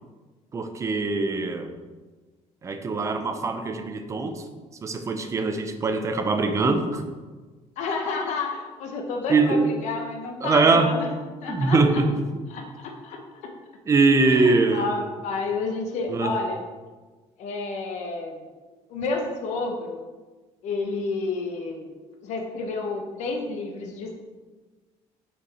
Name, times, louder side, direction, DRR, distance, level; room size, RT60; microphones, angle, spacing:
voice 1, 0.5-1.7 2.6-4.4 4.8-7.0 9.3-9.6 10.4-10.9 11.5-12.1 13.9-14.9 16.1-16.3, right 3 dB, 25° right, 7 dB, 0.6 m, -22 dB
voice 2, 7.8-11.1 11.4-12.0 12.5-12.6 13.0-13.2 14.2-16.6 17.4-18.4 18.9-20.0 20.6-21.9 22.2-24.1, left 3 dB, 75° left, 2 dB, 0.9 m, -30 dB
5.7 x 4.7 x 4.2 m, 1.3 s
cardioid pair, 135°, 12 cm